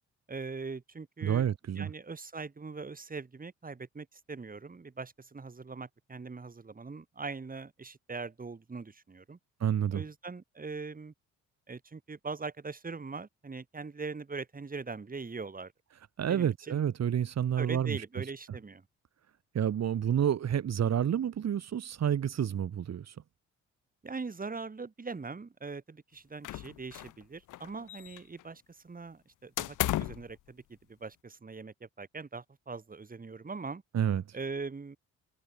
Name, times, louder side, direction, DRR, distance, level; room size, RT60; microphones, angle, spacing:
voice 1, 0.3-1.4 1.7-9.4 9.9-11.1 11.7-15.7 16.3-16.8 17.6-18.8 24.0-30.6 30.9-33.8 34.3-35.0, right 4 dB, 30° right, 7.5 m, -41 dB
voice 2, 1.2-1.9 9.6-10.0 16.2-18.0 19.5-23.1 33.9-34.4, right 9 dB, 60° right, 4.7 m, -29 dB
sound 1, 26.4-27.2 27.5-28.4 29.6-30.3, left 15 dB, 85° left, 6.2 m, -34 dB
cardioid pair, 90°, 30 cm